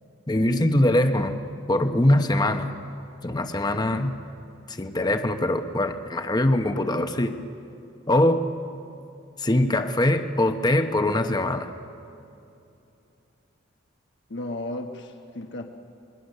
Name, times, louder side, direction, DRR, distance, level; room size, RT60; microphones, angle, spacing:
voice 1, 0.3-1.4 1.7-2.7 3.2-4.2 4.7-7.4 8.1-8.5 9.4-11.7, left 1 dB, 20° left, 7 dB, 0.9 m, -22 dB
voice 2, 14.3-15.6, left 1 dB, 60° left, 4 dB, 1.2 m, -34 dB
26.5 x 21.5 x 6.6 m, 2.8 s
head